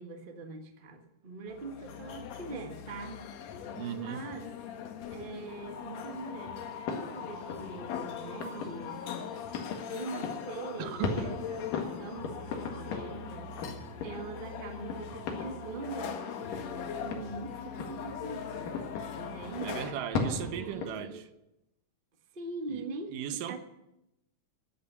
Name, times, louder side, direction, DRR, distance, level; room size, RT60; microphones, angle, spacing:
voice 1, 0.0-3.2 3.9-4.5 5.1-6.6 6.9-9.0 9.9-11.7 12.0-12.4 12.7-13.5 14.0-18.8 19.2-19.8 20.4-21.2 22.3-23.6, right 3 dB, 35° right, 0.8 m, -42 dB
sound 1, 1.5-19.9, left 7 dB, 65° left, 2.1 m, -41 dB
voice 2, 3.7-4.2 10.8-11.4 19.6-21.3 22.7-23.6, right 10 dB, 85° right, 2.6 m, -37 dB
sound 2, 5.5-20.9, left 5 dB, 85° left, 3.4 m, -39 dB
13.0 x 8.6 x 9.4 m
omnidirectional pair, 3.7 m